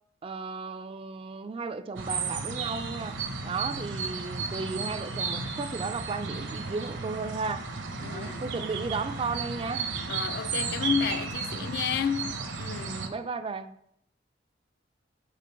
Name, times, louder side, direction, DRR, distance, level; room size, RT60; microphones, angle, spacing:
voice 1, 0.2-3.2 3.4-7.7 8.1-9.9 12.9-13.8, right 4 dB, 30° right, 0.3 m, -34 dB
sound 1, 2.0-13.1, right 4 dB, 70° right, 0.7 m, -34 dB
voice 2, 8.0-8.4 10.1-13.0, left 7 dB, 55° left, 0.3 m, -31 dB
5.2 x 4.4 x 5.5 m
head